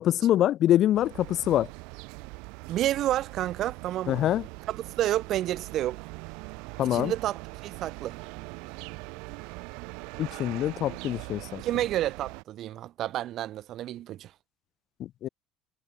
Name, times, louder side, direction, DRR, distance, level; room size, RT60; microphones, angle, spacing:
voice 1, 0.0-1.7 4.1-4.4 6.8-7.1 10.2-11.6 15.0-15.3, left 12 dB, 40° left, 0.7 m, -25 dB
sound 1, 0.9-12.4, right 30 dB, 85° right, 3.2 m, -42 dB
voice 2, 2.7-4.3 4.7-6.0 6.9-8.2 11.6-14.3, right 13 dB, 45° right, 1.8 m, -30 dB
cardioid pair, 170°, 0 cm